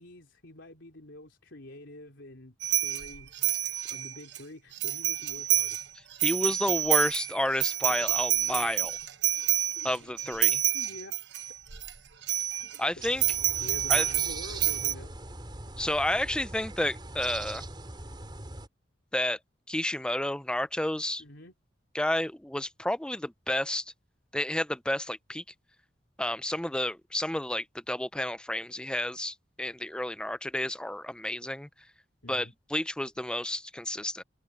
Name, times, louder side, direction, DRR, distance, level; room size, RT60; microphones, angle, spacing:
voice 1, 0.0-3.6 3.9-5.9 7.9-8.1 8.5-8.9 9.7-10.1 10.7-11.2 12.5-12.6 13.0-13.3 13.6-15.2 15.8-16.2 21.2-21.5 32.2-32.5, left 1 dB, 80° left, 3.2 m, -47 dB
sound 1, 2.6-4.4 4.8-5.8 6.1-11.9 12.2-12.8 13.2-14.9, right 13 dB, 65° right, 1.2 m, -28 dB
voice 2, 6.2-8.9 9.8-10.6 12.8-13.2 13.9-14.0 15.8-17.6 19.1-19.4 19.7-21.2 21.9-23.8 24.3-25.4 26.2-31.7 32.3-34.2, left 1 dB, 5° left, 0.5 m, -31 dB
sound 2, 12.9-18.7, right 2 dB, 25° right, 4.2 m, -42 dB
head